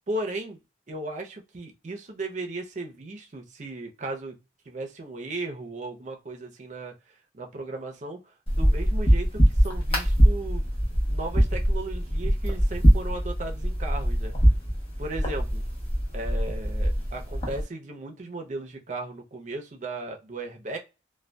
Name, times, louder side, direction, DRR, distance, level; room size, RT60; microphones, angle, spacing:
voice 1, 0.1-0.6 0.9-4.4 4.7-10.7 11.1-14.3 15.0-15.6 16.1-20.8, right 2 dB, 45° right, 3 dB, 0.6 m, -36 dB
sound 1, 8.5-17.6, equal, 35° left, 0.9 m, -23 dB
2.5 x 2.2 x 2.2 m, 0.28 s
head